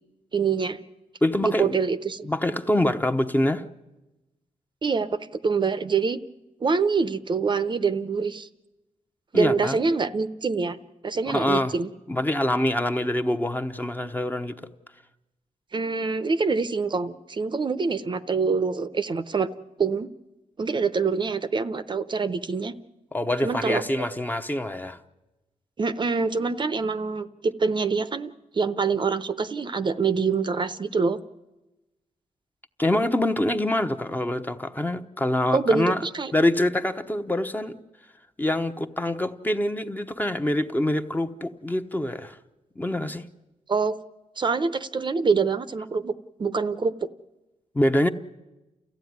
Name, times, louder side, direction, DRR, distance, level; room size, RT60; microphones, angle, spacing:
voice 1, 0.3-0.8 1.4-2.3 4.8-6.2 6.6-8.5 9.3-10.8 11.0-11.9 15.7-19.5 19.8-20.1 20.6-22.7 23.4-23.8 25.8-31.2 35.5-36.3 43.7-43.9 44.4-46.1 46.4-46.9, right 4 dB, 35° right, 0.8 m, -25 dB
voice 2, 1.2-1.8 2.2-3.6 9.3-9.8 11.3-11.7 12.1-14.5 23.1-25.0 32.8-36.0 36.3-37.8 38.4-42.4 42.8-43.2 47.7-48.1, left 1 dB, 15° left, 1.0 m, -25 dB
29.5 x 14.5 x 9.5 m
cardioid pair, 100°, 13 cm